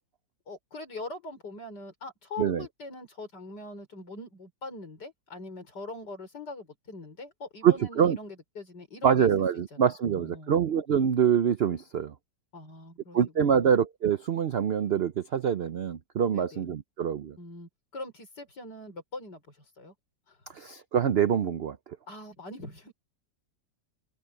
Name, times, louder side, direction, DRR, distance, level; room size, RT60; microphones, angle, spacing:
voice 1, 0.5-9.3 9.7-10.6 12.5-13.7 16.3-16.7 17.4-19.9 20.3-20.4 22.1-22.9, left 2 dB, 80° left, 5.9 m, -42 dB
voice 2, 7.6-8.2 9.0-12.1 13.1-17.4 20.5-21.8, right 8 dB, 60° right, 0.6 m, -25 dB
omnidirectional pair, 1.8 m